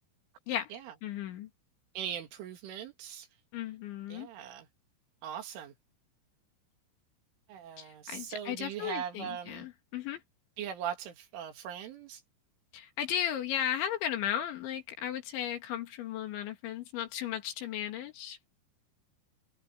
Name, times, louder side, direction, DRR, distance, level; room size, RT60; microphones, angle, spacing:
voice 1, 1.0-1.5 3.5-4.3 7.8-10.2 12.7-18.5, left 10 dB, 70° left, 4.2 m, -35 dB
voice 2, 2.0-3.3 4.1-4.7 5.2-5.7 7.5-9.7 10.6-12.2, right 9 dB, 70° right, 4.7 m, -40 dB
omnidirectional pair, 5.9 m